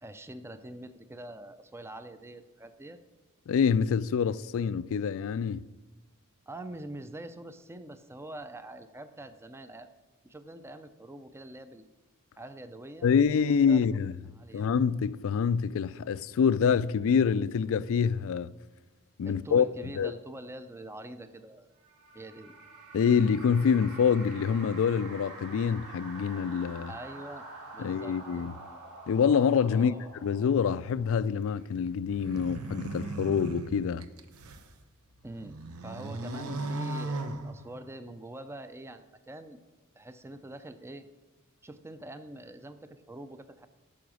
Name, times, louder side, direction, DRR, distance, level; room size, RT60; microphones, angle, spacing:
voice 1, 0.0-3.0 6.5-9.9 10.2-11.9 12.4-13.1 13.5-13.8 14.3-14.6 19.2-21.7 22.1-22.5 26.9-27.5 27.7-28.4 29.7-30.1 35.2-35.6 35.8-39.6 40.0-41.1 41.6-43.7, right 1 dB, 10° right, 0.4 m, -44 dB
voice 2, 3.5-5.7 13.0-14.1 14.5-18.5 19.2-19.7 20.0-20.1 22.9-26.9 27.8-28.5 29.1-29.9 30.2-34.1, left 6 dB, 65° left, 0.3 m, -26 dB
sound 1, 21.8-31.5, right 2 dB, 55° right, 3.2 m, -47 dB
sound 2, 32.1-34.7 35.2-38.0, right 2 dB, 85° right, 0.8 m, -37 dB
12.0 x 5.0 x 6.2 m
head